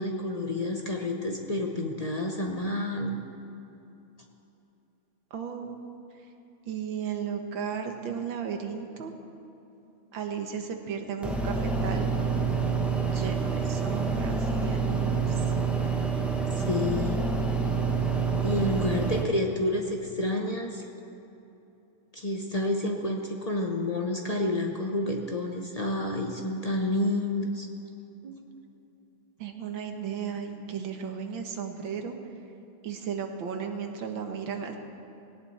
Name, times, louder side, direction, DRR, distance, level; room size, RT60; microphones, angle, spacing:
voice 1, 0.0-3.2 16.5-17.2 18.4-20.8 22.1-27.7, left 1 dB, 55° left, 2 dB, 0.4 m, -29 dB
voice 2, 5.3-6.0 6.7-9.1 10.1-12.1 13.0-15.5 28.2-28.6 29.4-32.2 32.8-34.8, right 7 dB, 70° right, 4 dB, 2.0 m, -35 dB
sound 1, 11.2-19.2, right 5 dB, ahead, 0.8 m, -27 dB
18.5 x 17.5 x 4.3 m, 2.9 s
omnidirectional pair, 2.3 m